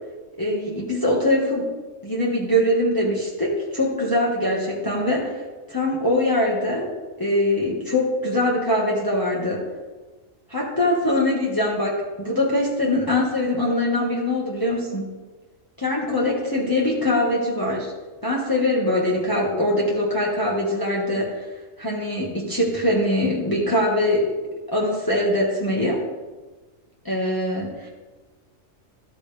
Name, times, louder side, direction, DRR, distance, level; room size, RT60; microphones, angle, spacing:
voice 1, 0.4-1.7 2.0-5.4 5.7-6.9 7.2-9.6 10.5-15.1 15.8-17.9 18.2-21.5 21.8-24.3 24.7-26.0 27.1-27.9, left 1 dB, 15° left, -4 dB, 1.8 m, -22 dB
13.0 x 13.0 x 3.5 m, 1.3 s
omnidirectional pair, 1.4 m